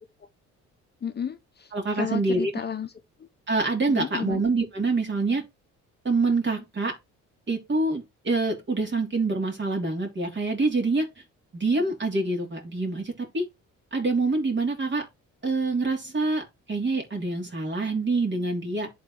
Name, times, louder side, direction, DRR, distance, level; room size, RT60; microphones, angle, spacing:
voice 1, 1.0-2.9 3.2-3.3 3.9-4.4, left 8 dB, 35° left, 0.8 m, -33 dB
voice 2, 1.7-2.5 3.5-5.4 6.0-6.9 7.5-11.1 11.5-13.4 13.9-15.0 15.4-18.9, right 3 dB, 40° right, 3.1 m, -26 dB
11.0 x 4.0 x 3.0 m
cardioid pair, 90°, 30 cm